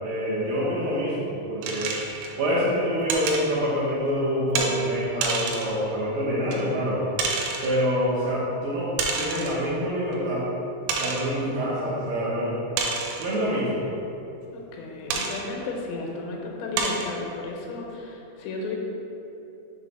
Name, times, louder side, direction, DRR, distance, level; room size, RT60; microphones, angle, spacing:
voice 1, 0.0-1.9 2.4-7.1 7.6-8.9 9.2-10.5 11.0-12.6 13.2-13.8, equal, 70° right, -9 dB, 2.3 m, -26 dB
sound 1, 1.6-2.4 3.1-3.5 4.6-4.7 5.2-5.8 6.5-6.6 7.2-7.8 9.0-9.6 10.1-10.2 10.9-11.3 12.8-13.4 15.1-15.4 16.1-16.2 16.8-17.1, right 4 dB, 90° right, 3.1 m, -28 dB
voice 2, 14.5-18.8, left 3 dB, 85° left, -1 dB, 3.0 m, -34 dB
6.7 x 3.3 x 5.4 m, 2.8 s
omnidirectional pair, 5.2 m